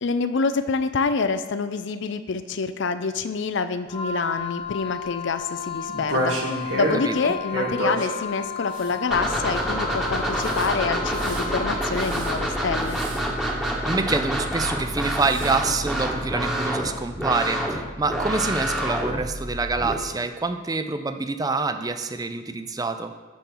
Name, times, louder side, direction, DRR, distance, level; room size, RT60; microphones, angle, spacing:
voice 1, 0.0-13.0, left 4 dB, 60° left, 11 dB, 0.5 m, -27 dB
Wind instrument woodwind instrument, 3.9-12.0, left 7 dB, 30° left, 1.0 m, -34 dB
sound 1, 5.9-7.0 7.5-8.1 8.7-8.9 10.4-10.7 11.1-11.4 12.0-12.3 12.9-13.2 15.0-15.5, right 1 dB, 65° right, 1.6 m, -29 dB
sound 2, 9.1-19.9, right 1 dB, ahead, 1.3 m, -27 dB
voice 2, 13.5-23.1, right 3 dB, 20° right, 8 dB, 0.5 m, -26 dB
12.5 x 4.5 x 5.5 m, 1.3 s
head